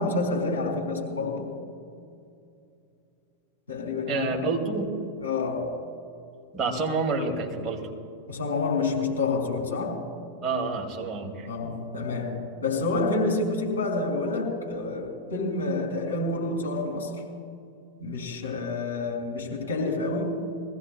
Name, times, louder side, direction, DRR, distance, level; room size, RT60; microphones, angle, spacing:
voice 1, 0.0-1.5 3.7-4.4 5.2-5.8 8.3-10.0 11.5-17.1 18.0-20.5, left 3 dB, 70° left, 2.9 m, -28 dB
voice 2, 4.1-4.9 6.5-7.9 10.4-11.5, right 4 dB, 30° right, 2.1 m, -28 dB
22.5 x 16.0 x 2.2 m
figure-of-eight pair, 90°, 0 cm